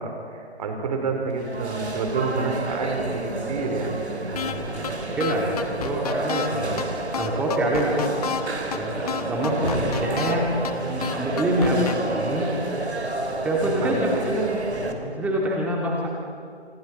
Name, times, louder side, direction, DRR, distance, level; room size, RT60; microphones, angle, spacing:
voice 1, 0.0-4.0 13.8-14.2, right 4 dB, 35° right, 4 dB, 3.5 m, -29 dB
sound 1, 1.3-14.9, right 2 dB, 80° right, 3.0 m, -30 dB
voice 2, 4.3-6.8 7.1-8.2 8.6-12.6 13.4-16.1, right 1 dB, 5° right, -2 dB, 2.1 m, -26 dB
sound 2, 4.4-4.5 4.8-4.9 5.2-6.5 6.8-6.9 7.1-8.4 8.7-8.8 9.1-10.3 10.6-10.7 11.0-11.9, left 8 dB, 35° left, 1.2 m, -30 dB
27.0 x 25.0 x 4.2 m, 2.3 s
figure-of-eight pair, 150°, 33 cm